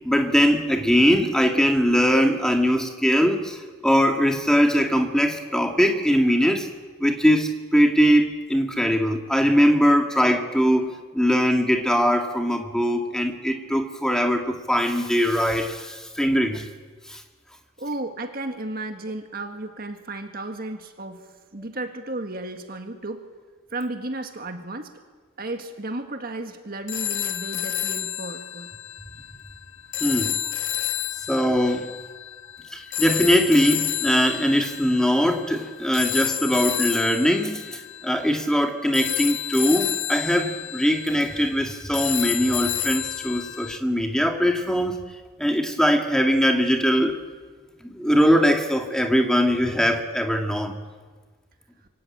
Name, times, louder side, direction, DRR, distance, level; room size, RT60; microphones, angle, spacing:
voice 1, 0.0-3.6 3.8-6.7 7.0-16.6 17.1-17.2 30.0-30.4 31.3-31.9 32.7-37.6 38.0-45.0 45.4-47.2 47.8-50.8, equal, 5° left, 4 dB, 2.2 m, -21 dB
voice 2, 17.8-23.3 23.7-24.9 25.4-28.7, right 2 dB, 45° right, 6 dB, 1.9 m, -33 dB
sound 1, 26.9-43.8, left 12 dB, 65° left, 1.5 m, -30 dB
27.0 x 24.5 x 8.7 m, 1.4 s
head